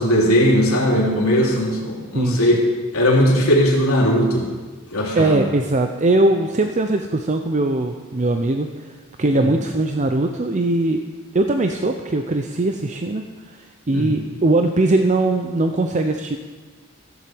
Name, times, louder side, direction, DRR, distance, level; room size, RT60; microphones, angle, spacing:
voice 1, 0.0-2.6 2.9-4.5 4.9-5.4 9.3-9.5 13.9-14.2, equal, 75° left, -2 dB, 3.1 m, -18 dB
voice 2, 2.1-2.5 5.1-11.0 11.3-16.4, right 2 dB, 35° right, 5 dB, 0.6 m, -20 dB
15.0 x 7.4 x 7.7 m, 1.4 s
head